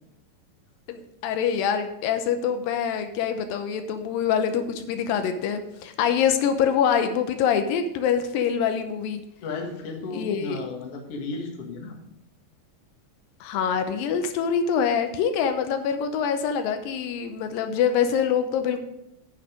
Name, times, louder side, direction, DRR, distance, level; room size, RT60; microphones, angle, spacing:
voice 1, 0.9-9.2 10.1-10.6 13.4-18.8, left 7 dB, 90° left, 7 dB, 2.6 m, -25 dB
voice 2, 9.4-12.0, left 3 dB, 50° left, 1 dB, 2.2 m, -34 dB
9.5 x 6.5 x 5.0 m, 0.83 s
omnidirectional pair, 3.9 m